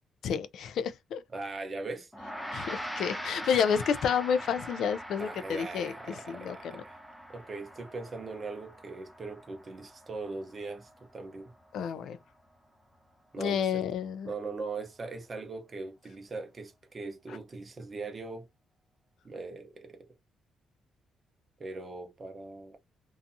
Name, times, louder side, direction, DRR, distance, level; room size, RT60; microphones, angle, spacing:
voice 1, 0.2-1.2 2.5-5.9 6.3-6.8 11.7-12.2 13.4-14.3, left 7 dB, 70° left, 0.3 m, -30 dB
voice 2, 1.3-2.1 5.2-7.0 7.3-11.5 13.3-13.8 14.2-18.5 19.2-20.1 21.6-22.8, right 3 dB, 35° right, 0.7 m, -40 dB
Gong, 2.1-11.7, equal, 5° left, 0.5 m, -42 dB
2.6 x 2.3 x 2.6 m
cardioid pair, 90°, 0 cm